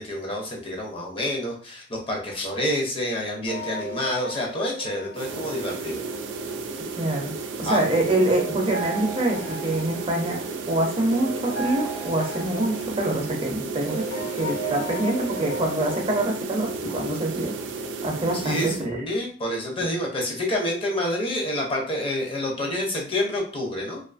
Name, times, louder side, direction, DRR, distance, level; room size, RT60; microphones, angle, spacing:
voice 1, 0.0-6.0 7.6-7.8 18.3-24.0, left 1 dB, 30° left, -1 dB, 0.5 m, -28 dB
sound 1, 3.5-7.0 8.2-16.2, right 2 dB, 60° left, 0.9 m, -36 dB
sound 2, 5.1-18.9, right 4 dB, 90° right, 0.4 m, -33 dB
voice 2, 6.9-7.3 7.6-10.4 10.7-17.5 18.0-19.0 19.8-19.9, right 1 dB, 30° right, 1 dB, 0.4 m, -25 dB
2.5 x 2.3 x 2.4 m, 0.44 s
head